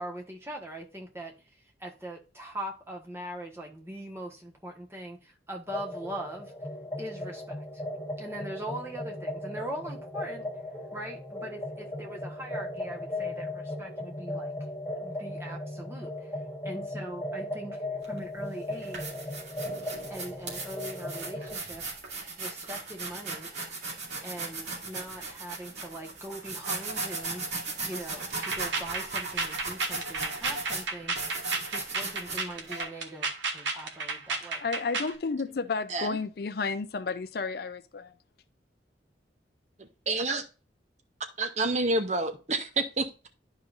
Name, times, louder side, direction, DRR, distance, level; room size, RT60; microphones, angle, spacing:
voice 1, 0.0-1.3 1.8-6.5 7.0-7.6 8.2-10.5 10.9-16.3 16.6-17.8 18.1-19.1 20.1-22.0 22.4-23.5 24.2-27.5 27.8-31.2 31.6-34.6, right 1 dB, 15° right, 1.3 m, -41 dB
sound 1, 5.7-21.6, left 1 dB, 10° left, 2.6 m, -37 dB
sound 2, 18.0-18.2 18.7-32.8, right 3 dB, 65° right, 2.5 m, -37 dB
sound 3, 28.3-35.1, right 4 dB, 85° right, 1.3 m, -32 dB
voice 2, 34.6-38.1, left 4 dB, 55° left, 0.4 m, -32 dB
voice 3, 39.8-40.4 41.4-43.3, right 2 dB, 40° right, 0.7 m, -29 dB
11.0 x 4.9 x 2.5 m
head